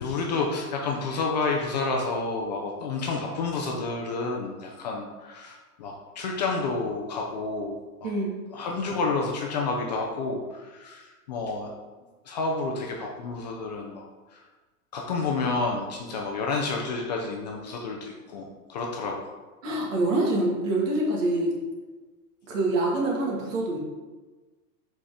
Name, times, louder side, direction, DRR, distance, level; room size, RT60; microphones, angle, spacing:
voice 1, 0.0-8.1 8.5-11.7 12.3-14.1 14.3-14.4 14.9-19.2, left 3 dB, 30° left, 0 dB, 0.4 m, -30 dB
voice 2, 8.0-8.4 19.6-21.5 22.5-23.8, right 2 dB, 60° right, -1 dB, 1.9 m, -25 dB
5.3 x 4.4 x 4.8 m, 1.3 s
supercardioid pair, 165°, 44 cm